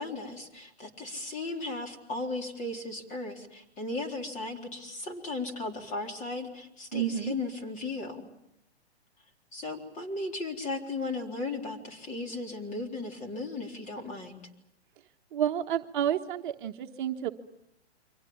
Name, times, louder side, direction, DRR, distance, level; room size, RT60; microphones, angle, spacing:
voice 1, 0.0-8.3 9.5-14.4, left 2 dB, 20° left, 3 dB, 3.9 m, -36 dB
voice 2, 6.9-7.3 15.3-17.3, right 10 dB, 45° right, 5 dB, 1.3 m, -30 dB
29.5 x 24.5 x 7.2 m, 0.81 s
hypercardioid pair, 130°, 34 cm